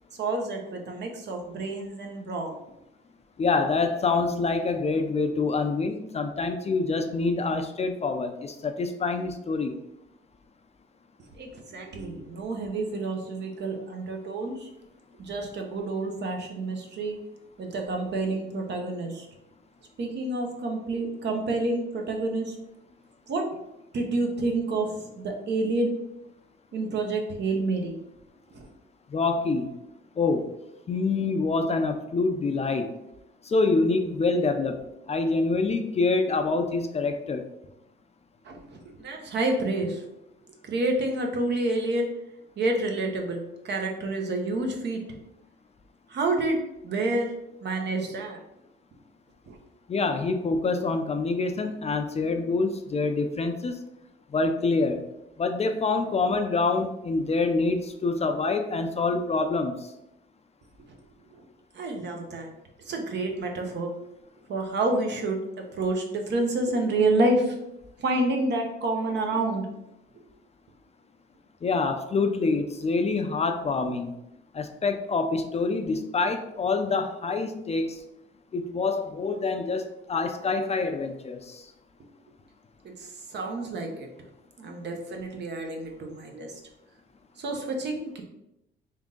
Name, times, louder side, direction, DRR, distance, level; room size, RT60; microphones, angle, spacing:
voice 1, 0.2-2.6 11.3-14.7 15.2-17.2 17.6-19.3 20.0-22.5 23.3-23.5 23.9-25.9 26.7-28.0 28.5-28.7 38.4-40.0 40.6-42.1 42.6-45.0 46.1-46.6 46.8-47.3 47.6-48.4 49.5-49.6 61.3-61.4 61.7-62.5 62.9-63.9 64.5-67.5 68.0-69.7 82.8-84.1 84.6-86.5 87.4-88.2, right 2 dB, 60° right, 2 dB, 0.9 m, -28 dB
voice 2, 3.4-9.8 29.1-29.7 30.2-30.5 30.9-32.9 33.5-34.8 35.1-37.5 49.9-53.8 54.3-55.0 55.4-59.9 71.6-74.1 74.5-78.0 78.5-81.6, left 3 dB, 30° left, 6 dB, 0.4 m, -26 dB
3.6 x 2.7 x 3.7 m, 0.86 s
cardioid pair, 90°, 20 cm